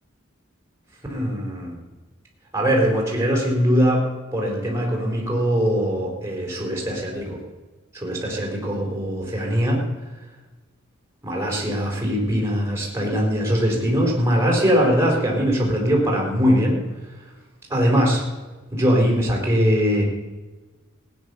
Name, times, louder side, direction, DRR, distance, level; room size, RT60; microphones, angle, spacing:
voice 1, 1.1-1.8 2.5-4.0 4.3-7.4 7.9-9.8 11.2-16.8 17.7-18.2 18.7-20.0, equal, 15° right, -1 dB, 4.2 m, -21 dB
16.0 x 9.8 x 6.8 m, 1.2 s
head